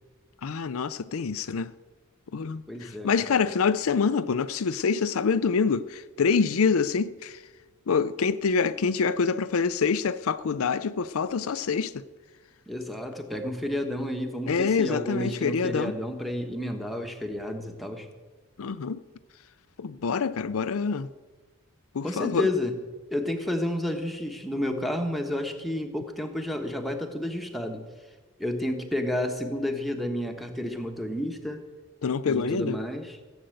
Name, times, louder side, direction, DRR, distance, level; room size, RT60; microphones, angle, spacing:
voice 1, 0.4-1.7 2.3-7.4 7.9-12.0 14.5-15.9 18.6-19.0 19.8-21.1 21.9-22.5 32.0-32.8, left 5 dB, 70° left, 0.5 m, -26 dB
voice 2, 2.7-3.4 12.7-18.1 22.0-22.7 23.1-27.8 28.4-31.6 32.3-33.2, left 1 dB, ahead, 1.3 m, -31 dB
17.0 x 8.0 x 7.8 m
head